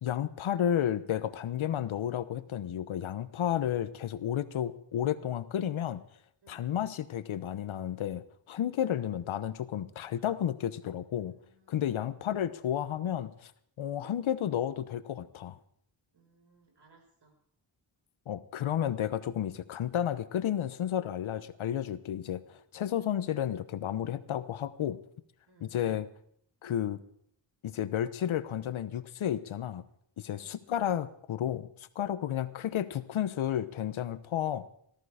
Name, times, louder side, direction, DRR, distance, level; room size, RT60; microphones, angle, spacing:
voice 1, 0.0-6.0 6.5-11.3 11.7-13.5 13.8-15.6 18.3-22.4 22.7-25.0 25.6-26.1 26.6-27.0 27.6-29.8 30.2-31.7 31.9-34.7, left 10 dB, 90° left, 14 dB, 1.0 m, -32 dB
voice 2, 6.4-6.7 8.7-9.0 11.1-12.2 16.1-17.4 25.5-25.7 30.3-30.6, right 3 dB, 60° right, 4 dB, 5.1 m, -63 dB
18.5 x 14.0 x 5.0 m, 0.68 s
wide cardioid pair, 90°, 47 cm